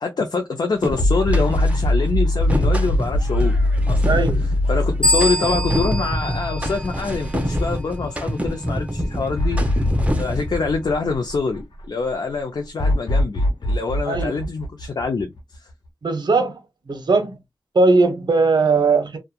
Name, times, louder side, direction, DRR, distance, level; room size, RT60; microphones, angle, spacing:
voice 1, 0.0-3.6 3.9-4.2 4.7-9.8 10.2-15.7, left 4 dB, 65° left, 0.6 m, -25 dB
sound 1, 0.8-1.9 2.3-10.6, equal, 15° right, 0.7 m, -27 dB
sound 2, 1.0-7.3 7.7-7.8 9.4-11.8 12.8-15.6, left 1 dB, 85° left, 1.0 m, -22 dB
voice 2, 4.1-4.4 14.1-14.4 16.0-16.6 16.9-17.4 17.7-19.2, right 3 dB, 65° right, 0.8 m, -18 dB
sound 3, 5.0-7.5, left 1 dB, 10° left, 0.9 m, -25 dB
2.8 x 2.3 x 2.3 m
cardioid pair, 55°, 8 cm